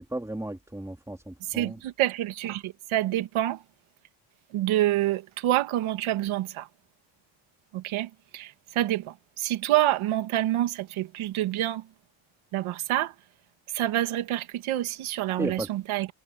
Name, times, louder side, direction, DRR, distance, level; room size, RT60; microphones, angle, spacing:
voice 1, 0.0-1.8 15.4-15.7, right 1 dB, 5° right, 3.4 m, -34 dB
voice 2, 1.5-3.6 4.5-6.7 7.7-11.9 12.5-13.1 13.7-16.1, right 14 dB, 90° right, 2.2 m, -27 dB
cardioid pair, 130°, 47 cm